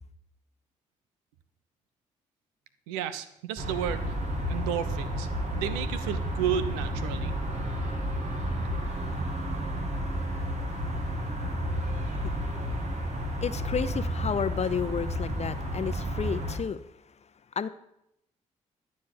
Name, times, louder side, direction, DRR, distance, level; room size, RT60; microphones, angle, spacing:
voice 1, 2.9-4.1 4.5-5.3 5.5-7.3, right 9 dB, 90° right, 12 dB, 0.7 m, -32 dB
sound 1, 3.6-16.6, equal, 50° right, 2.8 m, -31 dB
voice 2, 13.4-16.8 17.6-17.7, left 6 dB, 45° left, 13 dB, 0.8 m, -31 dB
11.5 x 5.3 x 8.8 m, 0.77 s
hypercardioid pair, 45°, 16 cm